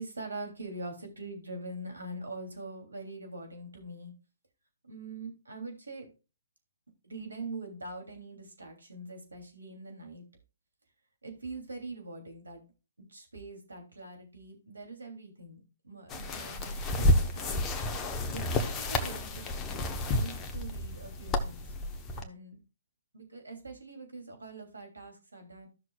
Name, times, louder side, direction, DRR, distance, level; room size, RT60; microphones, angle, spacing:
voice 1, 0.0-4.1 4.8-6.1 7.0-10.2 11.2-12.6 13.1-17.7 18.3-21.7 22.1-22.6 23.1-25.7, right 2 dB, 80° right, 3 dB, 3.0 m, -43 dB
sound 1, 16.1-22.2, left 1 dB, 20° left, 1.0 m, -30 dB
14.5 x 6.3 x 2.4 m, 0.31 s
figure-of-eight pair, 130°, 0 cm